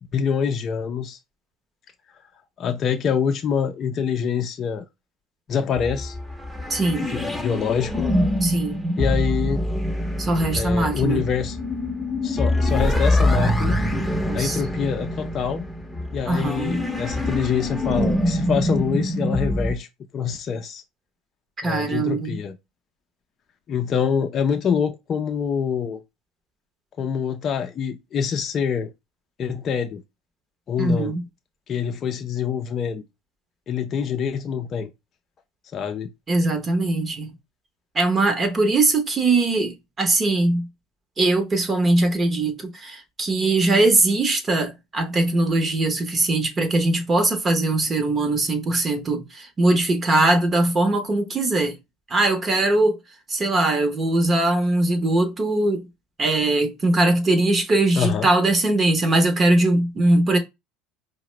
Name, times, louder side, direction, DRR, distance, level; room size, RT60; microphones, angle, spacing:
voice 1, 0.1-1.2 2.6-4.9 5.5-6.2 7.1-8.1 9.0-9.6 10.5-11.6 12.2-13.8 14.3-15.7 16.1-19.9 20.1-20.8 21.6-22.5 23.7-26.0 27.0-28.9 29.4-30.0 30.7-31.1 31.7-33.0 33.7-34.9 35.7-36.1 58.0-58.3, left 7 dB, 45° left, 0.5 m, -25 dB
sound 1, 5.8-19.7, left 1 dB, ahead, 0.8 m, -24 dB
voice 2, 6.7-7.1 8.4-8.8 10.2-11.3 14.3-14.6 16.3-16.9 21.6-22.4 30.8-31.2 36.3-37.3 37.9-40.7 41.2-51.8 52.1-53.0 53.3-55.9 56.2-60.4, right 2 dB, 30° right, 0.9 m, -21 dB
4.6 x 2.1 x 3.1 m
hypercardioid pair, 80°, 0 cm